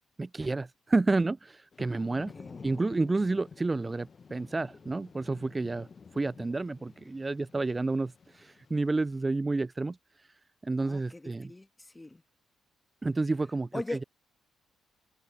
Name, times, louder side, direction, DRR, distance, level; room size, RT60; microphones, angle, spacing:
voice 1, 0.2-2.3 2.6-5.9 6.1-10.3 10.6-11.5 13.0-14.0, right 3 dB, 25° right, 0.4 m, -30 dB
Thunder / Rain, 1.7-9.3, left 5 dB, 40° left, 1.5 m, -51 dB
voice 2, 2.3-2.7 10.8-12.2 13.7-14.1, left 2 dB, 15° left, 2.5 m, -40 dB
figure-of-eight pair, 40°, 0 cm